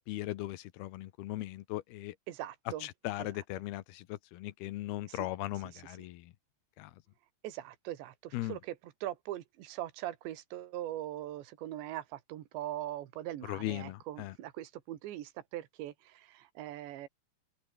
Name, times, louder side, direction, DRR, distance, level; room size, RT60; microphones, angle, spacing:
voice 1, 0.1-2.2 2.8-6.3 6.8-6.9 8.3-8.6 13.5-14.3, left 16 dB, 70° left, 2.7 m, -38 dB
voice 2, 2.3-2.9 5.1-5.2 5.7-5.8 7.4-17.1, right 13 dB, 80° right, 4.0 m, -41 dB
open air
omnidirectional pair, 5.2 m